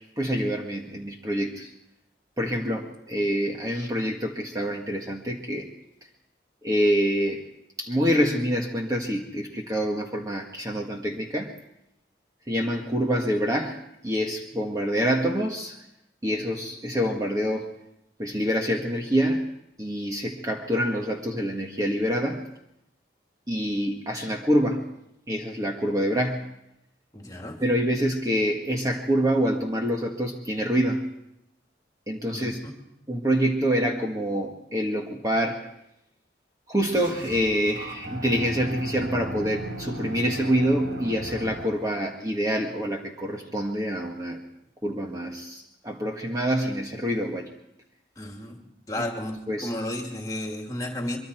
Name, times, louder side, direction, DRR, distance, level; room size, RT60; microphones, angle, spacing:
voice 1, 0.0-1.7 2.4-5.7 6.6-7.4 7.8-11.5 12.5-13.8 14.0-15.8 16.2-17.7 18.2-19.5 19.8-22.4 23.5-24.9 25.3-26.4 27.6-31.1 32.1-32.7 33.1-35.7 36.7-44.4 44.8-47.5 49.0-49.1 49.5-49.7, equal, 20° right, 1 dB, 1.7 m, -26 dB
voice 2, 27.1-27.6 32.3-32.7 48.2-48.6 48.9-51.2, left 1 dB, 20° left, 2 dB, 2.8 m, -33 dB
sound 1, 36.9-41.9, right 1 dB, 90° right, 4.1 m, -37 dB
24.0 x 23.5 x 4.5 m, 0.80 s
head